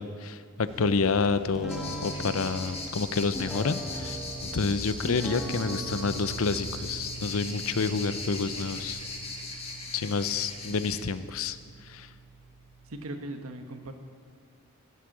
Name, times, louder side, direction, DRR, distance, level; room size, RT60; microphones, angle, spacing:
voice 1, 0.0-9.0 9.9-11.6 11.8-12.1, left 4 dB, 75° left, 13 dB, 0.6 m, -29 dB
sound 1, 0.6-8.9, right 1 dB, 40° right, 3.0 m, -48 dB
sound 2, 1.5-13.0, right 2 dB, 5° right, 1.4 m, -42 dB
sound 3, 1.7-11.0, left 3 dB, 30° left, 1.6 m, -39 dB
voice 2, 12.8-13.9, right 1 dB, 85° right, 6 dB, 1.3 m, -39 dB
15.0 x 8.4 x 7.3 m, 2.1 s
head